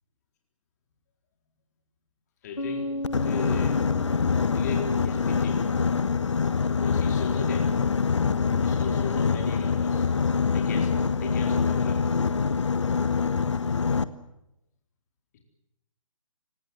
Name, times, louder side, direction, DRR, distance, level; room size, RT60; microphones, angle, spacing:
voice 1, 2.4-3.9 4.4-5.9 6.8-7.7 8.6-10.1 10.5-12.2 15.3-15.4, left 5 dB, 30° left, 2 dB, 4.1 m, -37 dB
Bass guitar, 2.6-6.4, left 1 dB, 90° left, 1.4 m, -36 dB
Boat Water vehicle, 3.0-14.0, left 5 dB, 55° left, 1.1 m, -25 dB
29.5 x 18.0 x 7.9 m, 0.86 s
figure-of-eight pair, 140°, 18 cm